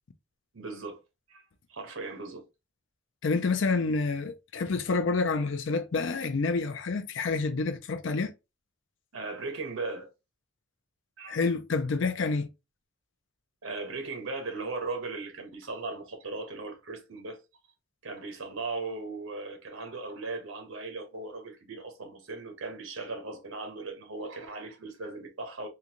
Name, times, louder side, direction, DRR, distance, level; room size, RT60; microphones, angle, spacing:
voice 1, 0.5-1.0 1.3-1.4 1.7-2.4 9.1-10.1 11.2-11.4 13.6-17.4 18.0-25.7, right 3 dB, 80° right, 1.0 m, -38 dB
voice 2, 3.2-8.3 11.3-12.5, left 4 dB, 65° left, 0.5 m, -28 dB
3.7 x 2.2 x 2.9 m
head